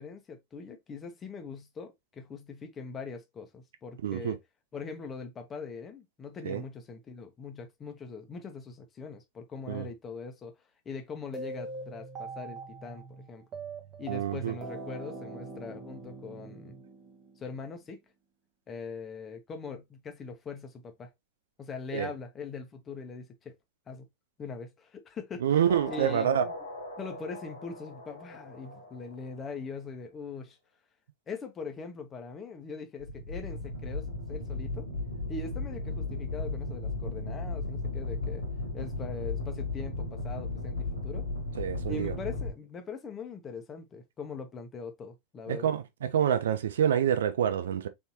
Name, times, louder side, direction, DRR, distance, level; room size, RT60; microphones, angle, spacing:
voice 1, 0.0-4.4 4.7-10.6 10.8-13.4 14.0-16.7 17.4-18.0 18.7-21.1 21.6-23.5 23.9-24.1 24.4-25.4 25.9-26.5 27.0-30.6 31.3-34.9 35.3-38.4 38.7-41.2 41.9-45.7, left 5 dB, 25° left, 1.0 m, -41 dB
voice 2, 4.0-4.3 6.4-6.6 9.7-9.9 14.1-14.6 21.9-22.1 25.4-26.5 41.6-42.1 45.5-47.9, right 9 dB, 60° right, 0.4 m, -27 dB
sound 1, 11.3-17.5, right 3 dB, 30° right, 0.9 m, -42 dB
sound 2, 25.7-29.6 33.0-42.5, left 2 dB, 85° left, 1.8 m, -36 dB
4.1 x 3.5 x 2.7 m
figure-of-eight pair, 90°, 0 cm